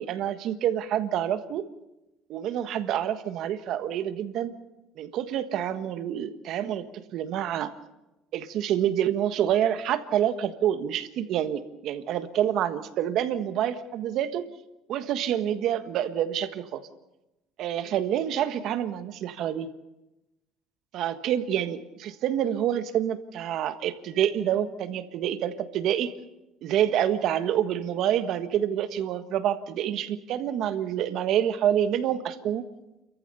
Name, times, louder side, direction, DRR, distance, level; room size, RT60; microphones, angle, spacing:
voice 1, 0.0-1.6 2.3-4.5 5.0-7.7 8.3-14.5 14.9-16.8 17.6-19.7 20.9-26.1 26.6-32.6, right 10 dB, 60° right, 11 dB, 1.5 m, -27 dB
29.5 x 14.5 x 6.9 m, 0.97 s
cardioid pair, 130°, 0 cm